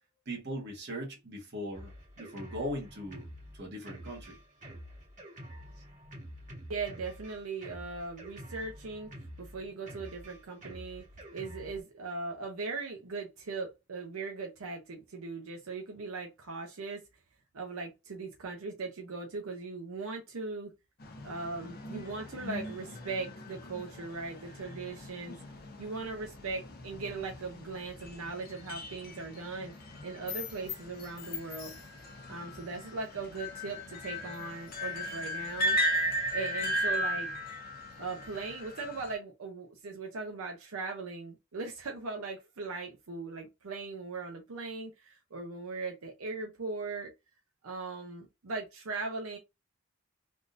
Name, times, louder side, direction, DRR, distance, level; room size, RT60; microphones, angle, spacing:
voice 1, 0.3-3.3 3.5-4.4, equal, 50° right, 1.2 m, -39 dB
Drum kit, 1.7-11.8, equal, 35° right, 1.3 m, -48 dB
voice 2, 6.7-9.1 9.4-11.0 11.3-17.0 17.5-20.7 21.2-25.4 25.8-29.7 30.0-31.7 32.3-35.8 36.3-37.3 38.0-47.1 47.6-49.4, right 3 dB, 85° right, 0.7 m, -39 dB
sound 1, 21.0-39.1, equal, 45° left, 0.8 m, -37 dB
3.6 x 2.5 x 2.5 m
head